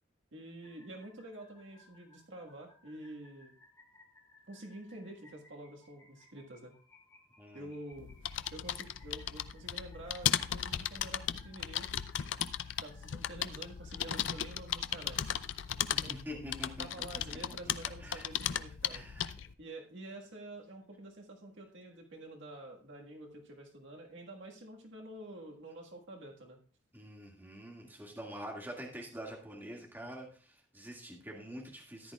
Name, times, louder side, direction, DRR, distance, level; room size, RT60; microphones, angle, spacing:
voice 1, 0.3-3.5 4.5-6.7 7.5-8.1 8.5-11.9 12.8-15.4 15.9-16.4 16.8-19.0 19.6-26.6, right 1 dB, 70° right, 1 dB, 1.7 m, -48 dB
sound 1, 0.6-15.6, left 2 dB, 15° left, 4.7 m, -64 dB
voice 2, 7.4-7.7 15.9-16.9 17.1-17.2 18.0-18.3 18.9-19.3 26.9-32.1, equal, 10° right, -1 dB, 2.0 m, -45 dB
sound 2, 7.9-19.5, left 10 dB, 70° left, 0.5 m, -36 dB
14.0 x 10.5 x 2.4 m, 0.37 s
head